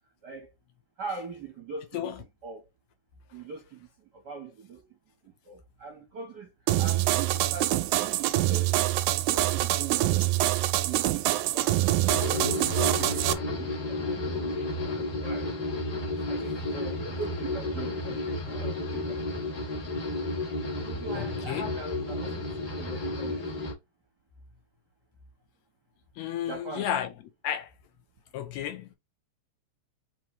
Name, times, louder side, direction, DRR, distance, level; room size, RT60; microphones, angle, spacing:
voice 1, 1.0-2.6 3.3-4.9 5.2-6.5 6.8-8.7 9.3-10.3 10.9-11.8 12.1-15.5 16.3-19.5 20.7-23.7 26.5-26.9, right 4 dB, 60° right, 1.1 m, -41 dB
sound 1, 6.7-13.3, right 16 dB, 85° right, 1.9 m, -25 dB
sound 2, 12.1-23.7, left 2 dB, 40° left, 1.6 m, -32 dB
voice 2, 21.1-21.7 26.2-27.1 27.4-27.7 28.3-29.0, left 10 dB, 75° left, 1.8 m, -32 dB
4.8 x 3.0 x 3.0 m
omnidirectional pair, 3.3 m